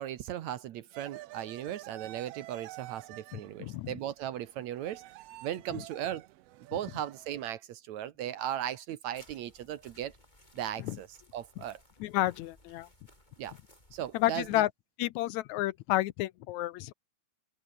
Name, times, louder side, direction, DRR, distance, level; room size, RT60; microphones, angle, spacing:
voice 1, 0.0-5.0 5.4-6.3 6.7-10.1 10.5-11.1 11.3-11.8 13.4-13.6 13.9-14.7, right 11 dB, 70° right, 2.1 m, -37 dB
sound 1, 0.9-7.5, right 16 dB, 90° right, 1.4 m, -49 dB
voice 2, 3.3-3.9 10.8-11.0 12.0-12.9 14.1-14.7 15.0-16.9, left 16 dB, 80° left, 1.9 m, -31 dB
sound 2, 9.1-14.6, left 1 dB, 10° left, 6.5 m, -61 dB
open air
omnidirectional pair, 3.6 m